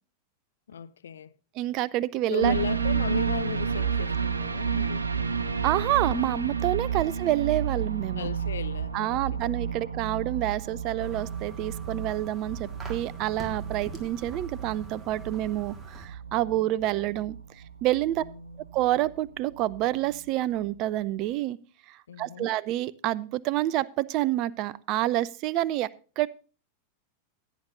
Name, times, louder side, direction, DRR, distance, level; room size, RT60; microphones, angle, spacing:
voice 1, 0.7-1.3 2.3-5.3 6.8-7.1 8.1-9.8 18.2-18.7 22.1-22.5, left 9 dB, 65° left, 0.4 m, -37 dB
voice 2, 1.6-2.5 5.6-8.3 8.9-18.2 18.7-21.6 21.9-25.9 26.2-26.3, right 14 dB, 40° right, 0.4 m, -28 dB
sound 1, 2.4-20.2 20.6-20.7, right 6 dB, 75° right, 0.6 m, -31 dB
sound 2, 11.0-16.1, right 2 dB, 15° right, 1.7 m, -45 dB
16.0 x 9.6 x 2.6 m
figure-of-eight pair, 90°, 0 cm